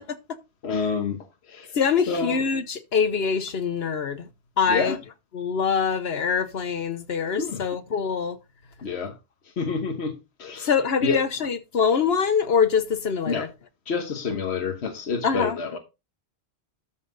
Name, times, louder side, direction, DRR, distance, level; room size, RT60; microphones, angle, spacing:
voice 1, 0.6-1.8 2.1-2.4 4.7-5.0 7.4-7.6 8.8-9.1 9.6-10.7 11.0-11.2 13.3-13.5 13.9-15.8, left 5 dB, 90° left, 1.4 m, -28 dB
voice 2, 1.7-4.3 4.6-5.0 5.3-8.4 10.6-13.5 15.2-15.6, left 6 dB, 70° left, 1.2 m, -24 dB
13.0 x 5.8 x 4.0 m
omnidirectional pair, 1.1 m